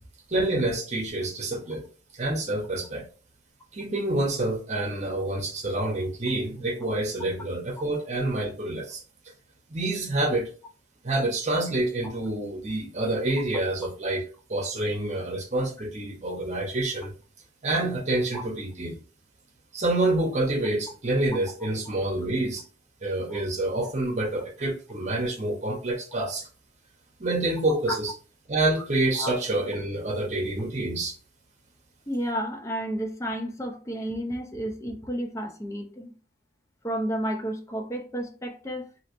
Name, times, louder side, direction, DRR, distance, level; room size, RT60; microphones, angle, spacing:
voice 1, 0.3-1.9 2.1-3.1 3.7-9.0 9.7-10.5 11.0-17.1 17.6-19.0 19.7-22.6 23.0-26.5 27.2-28.1 28.5-31.1, right 2 dB, 40° right, 0.9 m, -27 dB
voice 2, 32.1-36.1 36.8-38.9, equal, 15° left, 0.5 m, -31 dB
3.1 x 2.9 x 2.9 m
head